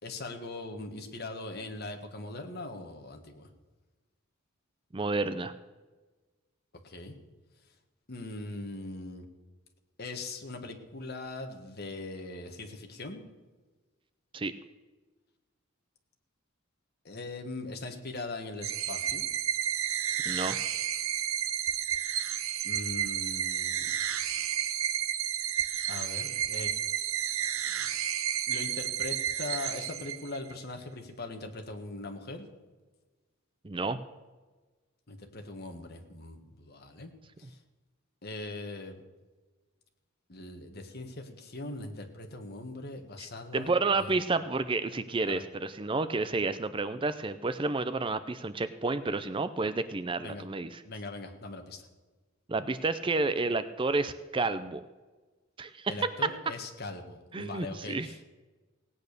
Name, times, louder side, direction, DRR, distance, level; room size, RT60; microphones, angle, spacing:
voice 1, 0.0-3.5 6.8-7.1 8.1-9.2 10.0-13.2 17.0-19.2 22.6-23.9 25.9-26.7 28.5-32.5 35.1-37.1 37.4-37.6 38.2-39.0 40.3-44.1 45.3-45.4 50.2-50.4 50.8-51.8 55.9-58.2, left 2 dB, 50° left, 4 dB, 1.5 m, -40 dB
voice 2, 4.9-5.5 14.3-14.5 20.3-20.7 33.6-34.0 43.5-50.8 52.5-54.8 55.6-56.1 57.3-58.1, right 3 dB, 25° right, 13 dB, 0.5 m, -30 dB
sound 1, 18.6-30.5, right 10 dB, 80° right, 0.8 m, -31 dB
17.5 x 8.6 x 6.7 m, 1.3 s
head